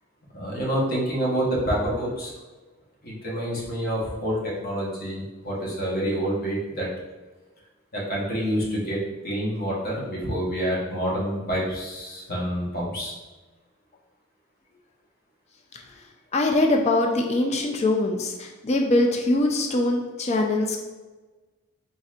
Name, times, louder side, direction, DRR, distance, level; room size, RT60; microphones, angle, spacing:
voice 1, 0.3-2.3 3.0-6.9 7.9-13.2, equal, 45° left, -5 dB, 1.2 m, -27 dB
voice 2, 16.3-20.8, left 2 dB, 30° left, 2 dB, 0.4 m, -22 dB
4.3 x 4.0 x 2.5 m, 1.2 s
head